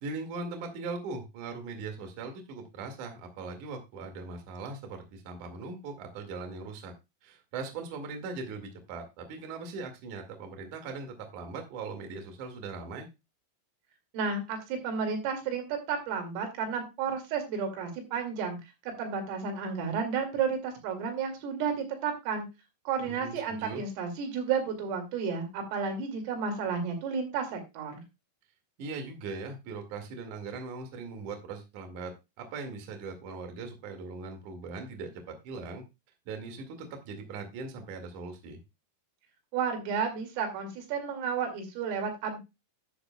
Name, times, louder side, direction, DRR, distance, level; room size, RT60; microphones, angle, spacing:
voice 1, 0.0-6.9 7.2-13.1 23.0-23.8 28.8-32.1 32.4-35.8 36.3-38.6, right 4 dB, 50° right, 5 dB, 2.9 m, -40 dB
voice 2, 14.1-18.6 18.8-22.5 22.9-28.0 39.5-42.4, right 6 dB, 85° right, 4 dB, 5.1 m, -32 dB
11.5 x 9.8 x 2.3 m, 0.25 s
omnidirectional pair, 5.8 m